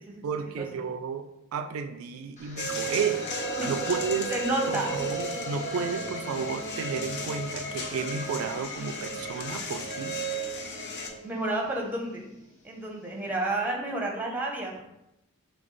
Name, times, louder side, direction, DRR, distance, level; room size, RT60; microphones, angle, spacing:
voice 1, 0.2-3.3 3.6-4.3 4.7-10.2, right 6 dB, 75° right, 8 dB, 0.3 m, -32 dB
sound 1, 2.4-12.4, right 1 dB, 35° left, 1.2 m, -39 dB
sound 2, 2.6-11.1, right 1 dB, 50° left, 0.6 m, -35 dB
voice 2, 4.3-5.0 11.2-12.2 12.6-14.8, right 2 dB, 10° right, 0 dB, 0.7 m, -30 dB
5.9 x 2.3 x 3.1 m, 0.86 s
head